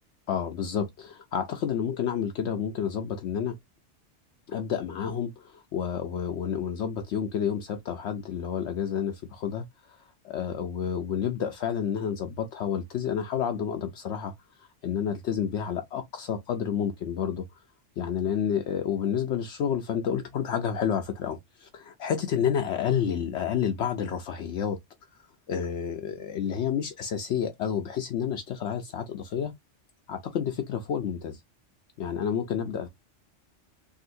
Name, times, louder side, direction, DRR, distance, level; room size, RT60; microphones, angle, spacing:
voice 1, 0.3-3.6 4.5-10.0 10.2-14.3 14.8-17.5 18.0-24.8 25.5-29.5 30.1-31.4 32.0-32.9, left 8 dB, 70° left, 0.9 m, -30 dB
3.8 x 2.4 x 2.6 m
omnidirectional pair, 1.2 m